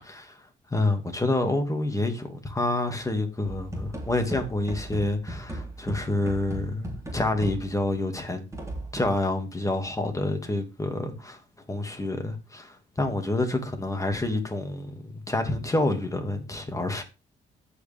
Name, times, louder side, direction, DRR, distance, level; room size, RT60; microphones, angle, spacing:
voice 1, 0.0-8.4 8.9-11.4 11.7-17.0, left 2 dB, 15° left, 2.3 m, -28 dB
sound 1, 3.4-7.9 8.5-9.2, right 1 dB, 15° right, 3.5 m, -37 dB
14.5 x 5.1 x 3.6 m
cardioid pair, 90°, 20 cm